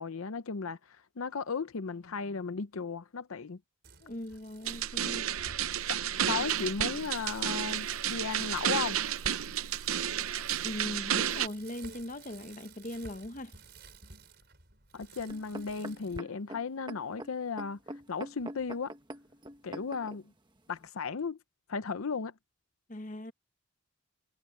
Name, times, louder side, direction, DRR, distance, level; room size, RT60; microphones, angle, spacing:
voice 1, 0.0-3.6 5.9-6.0 6.3-9.0 14.9-18.9 19.6-20.3 20.7-21.4 21.7-22.3, left 5 dB, 80° left, 0.7 m, -35 dB
Bicycle, 3.8-16.2, right 4 dB, 50° right, 5.8 m, -53 dB
voice 2, 4.0-5.3 6.2-6.5 10.1-10.3 10.6-13.5 22.9-23.3, left 1 dB, 35° left, 1.0 m, -40 dB
sound 1, 4.7-11.5, right 10 dB, 80° right, 0.7 m, -31 dB
sound 2, 15.3-20.2 20.9-21.0, right 1 dB, 20° right, 1.4 m, -44 dB
head